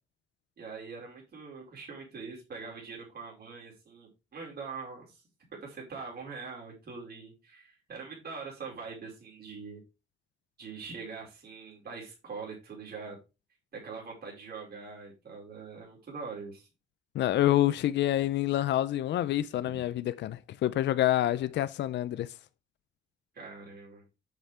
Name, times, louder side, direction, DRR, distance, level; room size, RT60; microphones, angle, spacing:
voice 1, 0.6-5.2 5.6-9.8 10.6-13.2 13.7-16.7 19.6-19.8 23.3-24.0, right 4 dB, 55° right, 4.8 m, -43 dB
voice 2, 17.1-22.3, left 13 dB, 65° left, 0.5 m, -27 dB
8.1 x 6.5 x 3.4 m
cardioid pair, 90°, 20 cm